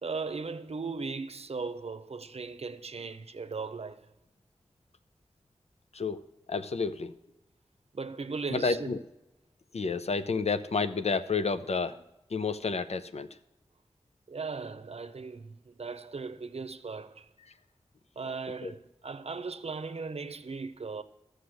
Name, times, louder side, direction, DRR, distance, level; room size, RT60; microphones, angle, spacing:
voice 1, 0.0-4.1 7.9-9.0 14.3-17.3 18.2-21.0, right 4 dB, 75° right, 0.7 m, -37 dB
voice 2, 6.5-7.1 8.5-9.0 9.7-12.0 12.3-13.3 18.6-18.7, left 4 dB, 85° left, 0.6 m, -30 dB
13.5 x 6.6 x 7.8 m
wide cardioid pair, 60°, 11 cm